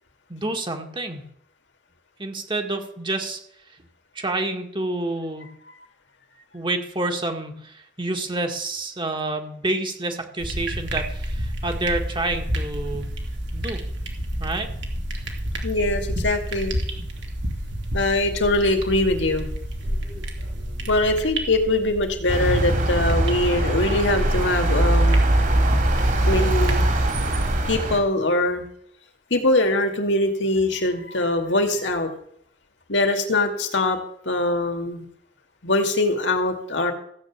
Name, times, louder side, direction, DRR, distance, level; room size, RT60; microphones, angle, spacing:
voice 1, 0.3-1.2 2.2-3.4 4.2-5.5 6.5-13.0 13.5-13.8 14.4-14.7, right 2 dB, 25° right, 4 dB, 1.8 m, -28 dB
sound 1, 10.4-27.7, equal, 85° right, 2.6 m, -30 dB
voice 2, 15.6-16.7 17.9-19.5 20.9-25.2 26.3-26.9 27.7-28.6 29.3-32.1 32.9-34.0 34.3-35.1 35.6-36.9, left 2 dB, 85° left, 3 dB, 2.4 m, -22 dB
sound 2, 22.3-28.0, right 1 dB, 50° right, 3.0 m, -21 dB
15.5 x 8.1 x 7.3 m, 0.67 s
head